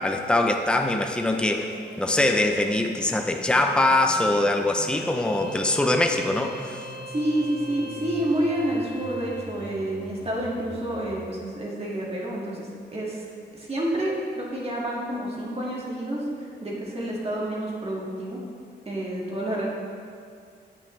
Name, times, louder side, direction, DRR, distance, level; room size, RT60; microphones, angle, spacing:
voice 1, 0.0-1.7 2.0-6.8, left 2 dB, 5° left, 4 dB, 0.6 m, -23 dB
sound 1, 1.2-11.2, equal, 25° left, 1.9 m, -44 dB
Bowed string instrument, 4.8-9.6, equal, 65° left, 1.1 m, -40 dB
voice 2, 7.1-13.3 13.5-16.2 16.6-18.4 18.9-19.7, right 1 dB, 35° right, -5 dB, 2.0 m, -29 dB
9.0 x 8.6 x 3.3 m, 2.4 s
wide cardioid pair, 105°, 18 cm